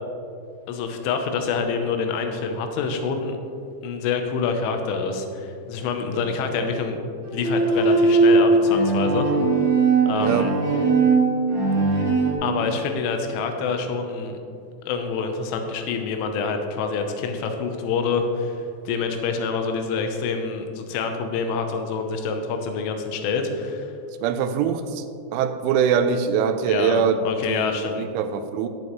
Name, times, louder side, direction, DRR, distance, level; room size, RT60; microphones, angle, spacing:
voice 1, 0.7-3.4 3.8-7.0 7.3-9.3 10.1-10.5 11.9-12.1 12.4-14.4 14.9-23.9 26.7-28.1, left 5 dB, 80° left, 5 dB, 3.3 m, -27 dB
voice 2, 6.1-6.7 10.2-10.5 24.2-25.0 25.3-27.2 27.5-28.7, right 7 dB, 80° right, 7 dB, 3.0 m, -23 dB
Bowed string instrument, 7.3-12.3, right 3 dB, 50° right, 2.2 m, -19 dB
14.0 x 8.3 x 3.1 m, 2.4 s
omnidirectional pair, 5.7 m